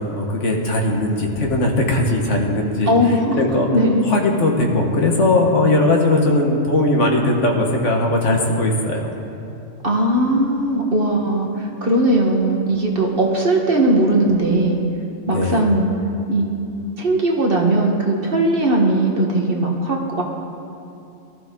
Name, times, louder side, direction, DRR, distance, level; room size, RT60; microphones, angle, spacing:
voice 1, 0.0-3.7 4.0-9.2 15.3-15.7, left 2 dB, 75° left, 1 dB, 1.8 m, -19 dB
voice 2, 2.9-3.4 3.7-4.0 9.8-14.8 15.3-15.9 16.3-16.5 17.0-20.2, right 1 dB, 50° right, 0 dB, 1.7 m, -18 dB
19.0 x 12.5 x 3.8 m, 2.7 s
omnidirectional pair, 1.3 m